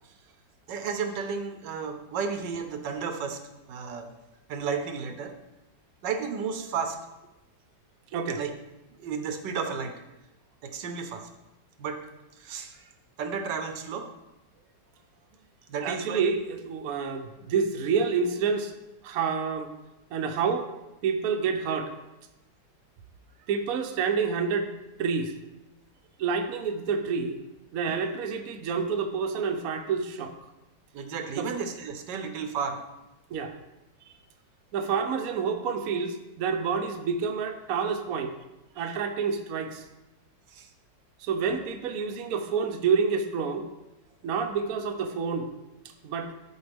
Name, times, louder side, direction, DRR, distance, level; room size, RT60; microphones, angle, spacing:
voice 1, 0.7-3.4 3.7-4.1 4.5-5.3 6.0-7.0 8.3-8.5 9.0-9.9 10.6-11.3 11.8-12.0 12.4-12.9 13.2-14.1 15.7-16.3 30.9-32.8 34.0-34.2 38.8-38.9 40.5-40.7, right 6 dB, 75° right, 6 dB, 1.3 m, -33 dB
voice 2, 8.1-8.4 15.8-18.7 19.0-19.7 20.1-20.7 21.0-21.9 23.5-24.7 25.0-25.3 26.2-27.4 27.7-30.5 31.4-31.5 33.3-33.5 34.7-38.3 38.8-39.9 41.2-43.7 44.2-45.5 46.0-46.3, right 5 dB, 60° right, 5 dB, 1.0 m, -28 dB
13.0 x 4.4 x 3.5 m, 0.97 s
omnidirectional pair, 2.0 m